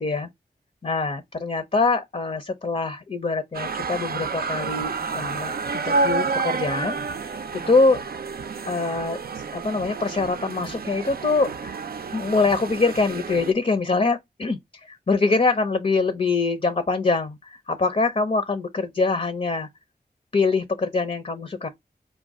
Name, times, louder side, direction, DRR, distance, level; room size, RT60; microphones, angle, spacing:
voice 1, 0.8-7.0 7.7-8.0 8.7-9.2 9.5-11.7 12.1-19.7 20.3-21.7, left 3 dB, 40° left, 0.6 m, -24 dB
sound 1, 3.5-13.5, right 4 dB, 65° right, 0.4 m, -29 dB
5.1 x 2.3 x 3.5 m
wide cardioid pair, 65°, 17 cm